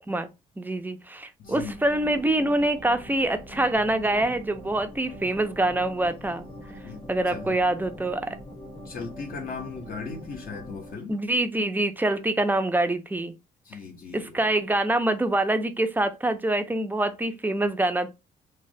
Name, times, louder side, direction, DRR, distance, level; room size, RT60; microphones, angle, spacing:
voice 1, 0.6-6.5 7.1-8.4 11.1-13.3 14.1-18.1, right 1 dB, 10° right, 0.4 m, -25 dB
voice 2, 1.4-1.7 6.8-7.6 8.8-11.2 13.6-14.4, left 5 dB, 55° left, 0.7 m, -38 dB
sound 1, 1.4-10.9, equal, 35° left, 1.0 m, -43 dB
3.1 x 2.1 x 2.6 m
cardioid pair, 85°, 18 cm